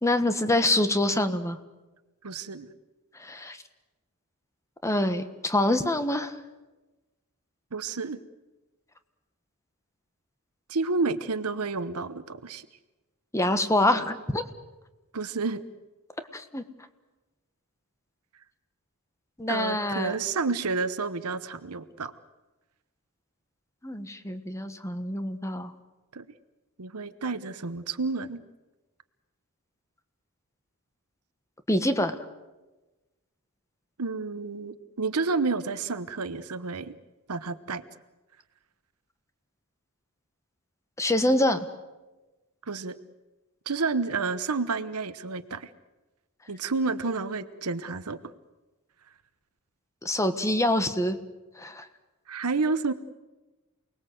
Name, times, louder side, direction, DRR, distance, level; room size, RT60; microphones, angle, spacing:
voice 1, 0.0-1.6 3.2-3.6 4.8-6.4 13.3-14.5 16.3-16.6 19.4-20.1 23.8-25.7 31.7-32.2 41.0-41.7 50.0-51.2 51.6-51.8, left 1 dB, 15° left, 9 dB, 1.4 m, -25 dB
voice 2, 2.2-2.7 7.7-8.2 10.7-12.6 15.1-15.6 19.5-22.1 26.1-26.2 26.8-28.4 34.0-36.9 37.3-37.8 42.7-43.0 43.7-45.7 46.5-48.2 52.3-52.9, right 4 dB, 80° right, 12 dB, 1.0 m, -30 dB
28.5 x 20.0 x 7.9 m, 1.1 s
head